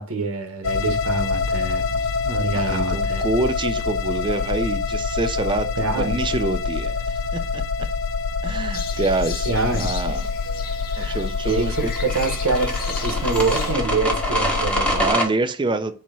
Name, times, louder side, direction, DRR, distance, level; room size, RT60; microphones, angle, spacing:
voice 1, 0.0-3.2 5.8-6.1 9.4-9.9 11.0-11.2 11.5-15.1, right 3 dB, 85° right, 1.1 m, -26 dB
sound 1, 0.6-15.1, left 4 dB, 65° left, 0.4 m, -26 dB
voice 2, 2.5-7.6 8.4-9.5 9.8-10.3 11.0-11.9 15.0-15.9, right 2 dB, 20° right, 0.4 m, -26 dB
sound 2, 8.7-13.8, left 6 dB, 45° left, 0.7 m, -36 dB
sound 3, 11.6-15.2, right 1 dB, 5° left, 1.0 m, -25 dB
4.5 x 2.8 x 4.1 m
head